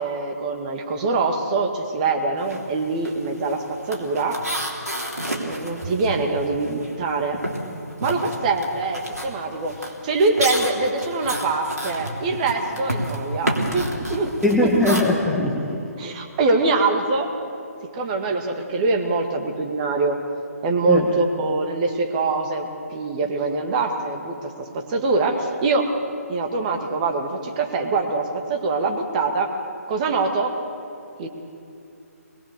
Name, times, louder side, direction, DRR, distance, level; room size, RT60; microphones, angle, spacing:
voice 1, 0.0-4.4 5.2-7.4 8.0-9.8 10.0-14.3 14.6-14.7 16.0-17.3 17.9-20.2 20.6-25.9 26.3-29.5 29.9-30.6 31.2-31.3, right 3 dB, 30° right, 4 dB, 1.9 m, -24 dB
sound 1, 2.4-2.7 2.9-7.0 7.3-15.0, right 1 dB, 80° right, 3.4 m, -30 dB
voice 2, 14.4-15.8 20.9-21.1, left 2 dB, 5° left, -4 dB, 1.3 m, -20 dB
22.5 x 21.0 x 6.8 m, 2.6 s
figure-of-eight pair, 140°, 9 cm